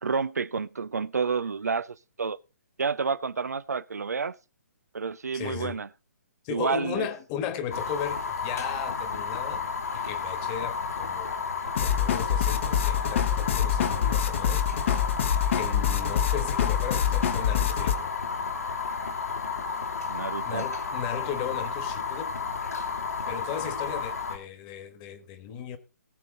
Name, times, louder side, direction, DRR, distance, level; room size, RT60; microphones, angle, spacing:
voice 1, 0.0-2.4 2.8-4.4 4.9-5.9 6.5-7.1 20.1-20.7, right 5 dB, 75° right, 0.5 m, -29 dB
voice 2, 5.3-5.8 6.4-9.7 9.9-11.3 11.8-14.6 15.5-18.1 20.4-22.3 23.3-25.8, left 8 dB, 30° left, 1.6 m, -36 dB
Fire, 7.7-24.4, left 5 dB, 75° left, 2.8 m, -32 dB
sound 1, 11.8-18.0, left 9 dB, 50° left, 1.2 m, -26 dB
19.5 x 6.6 x 3.9 m
figure-of-eight pair, 130°, 9 cm